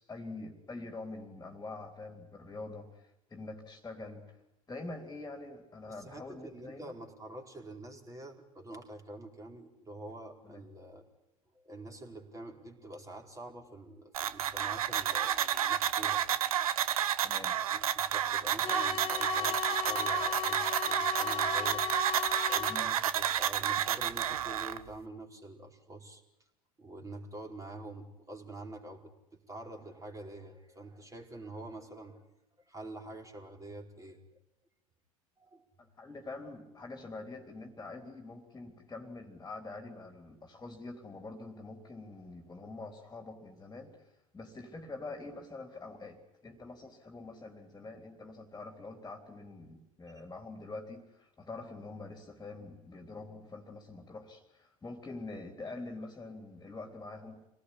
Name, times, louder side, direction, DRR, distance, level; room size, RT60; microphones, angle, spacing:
voice 1, 0.0-4.4 4.7-6.9 10.4-10.6 17.2-17.6 22.7-22.9 35.8-57.4, left 3 dB, 15° left, 5 dB, 3.6 m, -45 dB
voice 2, 5.9-11.0 11.5-16.2 17.7-22.1 22.5-26.2 26.8-32.2 32.7-34.2 35.4-35.6, right 2 dB, 15° right, 2 dB, 4.5 m, -46 dB
sound 1, 14.1-24.8, right 10 dB, 80° right, 1.1 m, -30 dB
sound 2, 18.6-22.8, left 9 dB, 35° left, 1.4 m, -36 dB
27.0 x 18.5 x 10.0 m, 0.87 s
hypercardioid pair, 85°, 18 cm